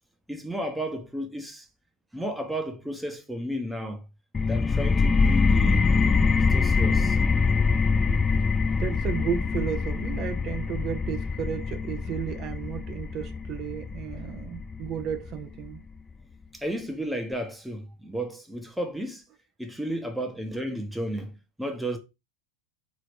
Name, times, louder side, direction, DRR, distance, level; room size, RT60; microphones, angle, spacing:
voice 1, 0.3-1.7 2.1-4.1 4.5-5.9 6.4-7.2 16.5-19.2 19.6-22.0, right 1 dB, 5° right, 0.8 m, -33 dB
sound 1, 4.3-15.8, left 4 dB, 20° left, 0.3 m, -24 dB
voice 2, 8.8-15.8, right 8 dB, 40° right, 0.6 m, -33 dB
3.9 x 3.0 x 3.1 m
hypercardioid pair, 90°, 0 cm